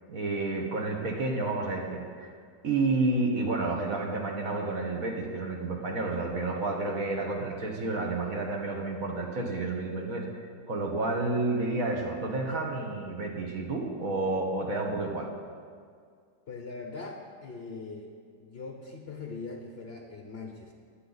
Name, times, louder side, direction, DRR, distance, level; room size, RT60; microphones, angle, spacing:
voice 1, 0.1-2.3 2.6-15.3, right 2 dB, 50° right, 0 dB, 1.6 m, -30 dB
voice 2, 16.5-18.1 18.4-20.7, left 3 dB, 45° left, 2 dB, 0.9 m, -41 dB
20.5 x 7.7 x 4.0 m, 2.1 s
omnidirectional pair, 2.1 m